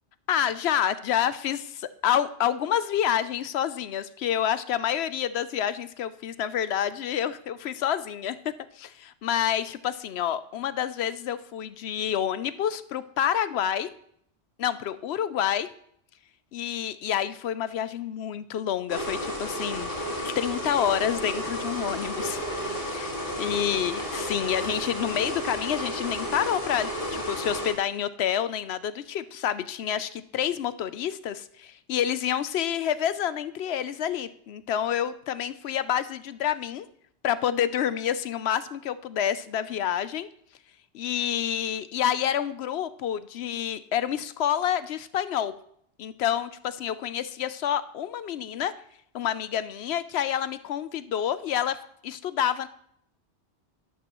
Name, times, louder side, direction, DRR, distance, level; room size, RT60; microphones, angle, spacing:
voice 1, 0.3-13.9 14.6-15.7 16.5-19.9 20.2-22.4 22.8-36.9 37.2-40.3 40.9-45.5 46.0-48.7 49.1-51.8 52.0-52.7, left 10 dB, 70° left, 14 dB, 0.8 m, -28 dB
sound 1, 18.9-27.7, equal, 50° left, 2.3 m, -32 dB
12.5 x 12.0 x 3.0 m, 0.69 s
omnidirectional pair, 1.1 m